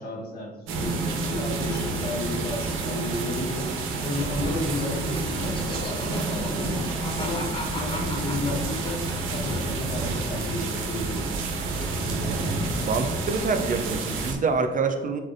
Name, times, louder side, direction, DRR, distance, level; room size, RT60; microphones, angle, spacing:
voice 1, 0.0-3.7 4.0-9.0 9.3-11.3, left 1 dB, 50° left, -1 dB, 1.3 m, -33 dB
sound 1, 0.7-14.3, right 3 dB, 90° right, 0.7 m, -29 dB
Laughter, 4.0-9.8 10.1-10.9, left 2 dB, 25° left, 1.4 m, -38 dB
voice 2, 12.8-15.2, right 4 dB, 40° right, 7 dB, 0.5 m, -26 dB
7.4 x 2.6 x 2.6 m, 1.2 s
cardioid pair, 90°, 20 cm